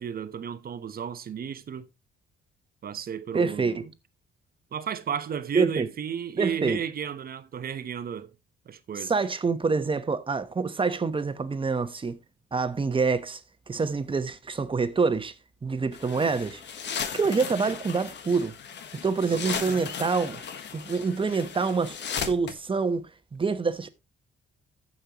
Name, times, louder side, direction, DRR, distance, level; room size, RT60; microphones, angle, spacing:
voice 1, 0.0-1.9 2.8-3.9 4.7-8.3 8.7-9.1 16.2-16.3 19.3-19.8, right 8 dB, 50° right, 1.0 m, -33 dB
voice 2, 3.3-3.8 5.5-5.9 6.4-6.8 9.0-12.2 12.5-13.4 13.7-15.3 15.6-16.6 17.1-18.5 18.9-20.4 20.7-23.9, right 4 dB, 25° right, 1.1 m, -26 dB
sound 1, 15.9-22.5, left 7 dB, 60° left, 1.4 m, -36 dB
14.5 x 5.5 x 3.0 m
cardioid pair, 90°, 20 cm